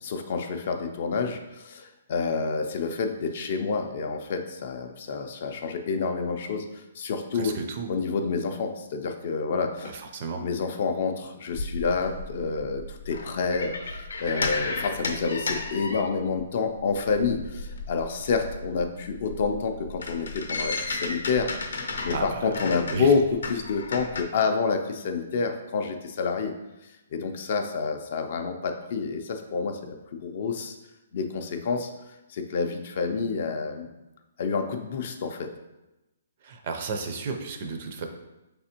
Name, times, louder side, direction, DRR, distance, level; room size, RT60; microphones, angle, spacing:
voice 1, 0.0-7.6 7.9-10.0 10.4-21.5 22.0-26.5 26.8-30.8 31.1-31.9 32.3-33.9 34.4-35.5, left 4 dB, 40° left, 5 dB, 0.4 m, -28 dB
voice 2, 7.3-7.9 9.9-10.4 22.1-23.1 36.4-38.1, right 4 dB, 35° right, 5 dB, 0.4 m, -33 dB
sound 1, 11.5-16.5 16.8-24.2, left 3 dB, 85° left, 0.6 m, -34 dB
4.8 x 3.4 x 2.8 m, 1.0 s
hypercardioid pair, 175°, 0 cm